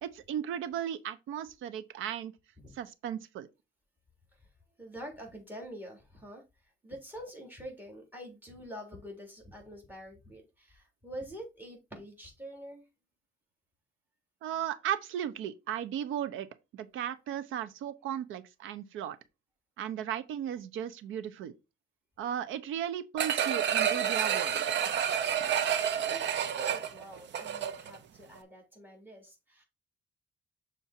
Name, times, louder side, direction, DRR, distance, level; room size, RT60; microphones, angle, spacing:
voice 1, 0.0-2.3 2.7-3.5 14.4-16.5 16.7-19.2 19.8-21.5 22.2-24.6, right 10 dB, 90° right, 0.9 m, -36 dB
voice 2, 4.8-6.4 6.8-12.8 26.0-29.6, equal, 10° right, 3.7 m, -46 dB
sound 1, 23.2-28.0 28.4-28.5, right 9 dB, 65° right, 0.9 m, -29 dB
6.9 x 4.4 x 4.4 m
cardioid pair, 90°, 20 cm